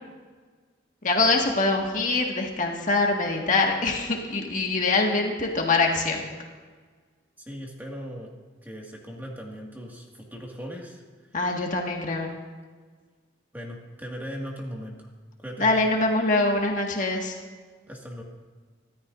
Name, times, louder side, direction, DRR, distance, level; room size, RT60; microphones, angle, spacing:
voice 1, 1.0-6.3 11.3-12.3 15.6-17.4, left 3 dB, 45° left, 0 dB, 1.8 m, -24 dB
voice 2, 7.4-8.3 8.6-11.0 13.5-15.1 15.4-15.7 17.9-18.2, equal, 10° right, -1 dB, 2.0 m, -38 dB
24.5 x 13.5 x 2.6 m, 1.5 s
head